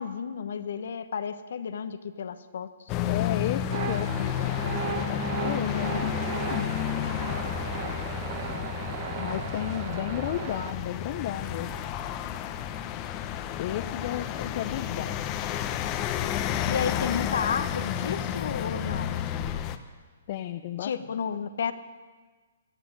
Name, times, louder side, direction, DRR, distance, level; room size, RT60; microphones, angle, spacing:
voice 1, 0.0-2.9 16.6-19.6 20.8-21.7, left 6 dB, 65° left, 11 dB, 1.0 m, -32 dB
sound 1, 2.9-19.8, left 9 dB, 30° left, 1.0 m, -31 dB
voice 2, 3.1-6.9 9.2-11.7 13.6-15.1 20.3-20.9, left 12 dB, 45° left, 8 dB, 0.6 m, -33 dB
sound 2, 3.7-10.7, right 8 dB, 45° right, 1.2 m, -36 dB
14.5 x 9.1 x 9.9 m, 1.4 s
hypercardioid pair, 130°, 0 cm